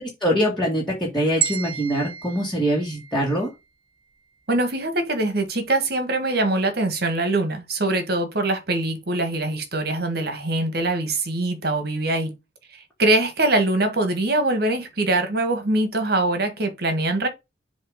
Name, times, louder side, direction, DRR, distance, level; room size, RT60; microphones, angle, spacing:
voice 1, 0.2-3.5, equal, 5° left, 2.1 m, -23 dB
sound 1, 1.4-3.6, right 8 dB, 25° right, 0.9 m, -31 dB
voice 2, 4.5-12.3 13.0-17.3, right 2 dB, 55° right, 1.6 m, -23 dB
7.2 x 3.0 x 5.0 m
head